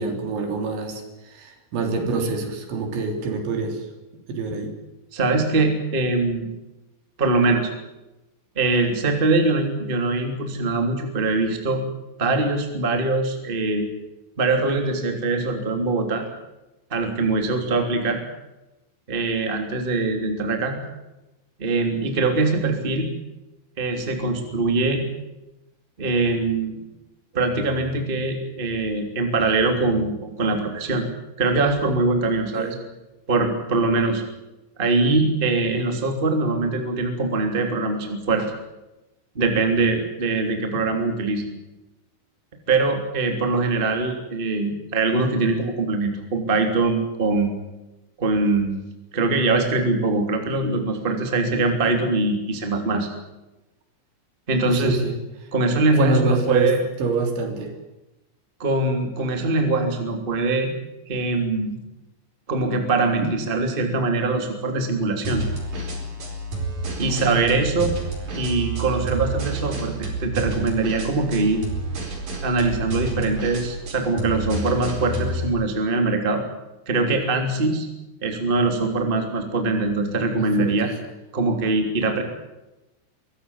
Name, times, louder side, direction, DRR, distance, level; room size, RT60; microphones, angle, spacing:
voice 1, 0.0-3.8 4.3-4.7 32.6-32.8 40.7-40.8 54.6-55.2 56.0-56.7 57.0-57.7 63.2-63.3 67.1-67.5 80.3-80.9, right 3 dB, 70° right, 4 dB, 5.7 m, -26 dB
voice 2, 5.1-6.5 7.2-7.7 8.5-11.8 12.2-13.9 14.4-16.2 16.9-18.2 19.1-20.8 21.6-23.1 23.8-25.1 26.0-26.8 27.3-31.0 31.4-32.7 33.3-34.2 34.8-38.5 39.3-41.5 42.7-47.5 48.2-48.8 49.1-53.1 54.5-55.0 55.5-56.8 58.6-60.7 61.1-61.8 62.5-65.5 67.0-67.9 68.3-71.6 72.4-76.4 76.9-77.9 78.2-80.9 81.3-82.2, right 3 dB, 15° right, 4 dB, 2.4 m, -22 dB
sound 1, 65.2-75.5, right 2 dB, 40° right, 5.7 m, -29 dB
23.5 x 15.5 x 9.8 m, 0.99 s
omnidirectional pair, 5.5 m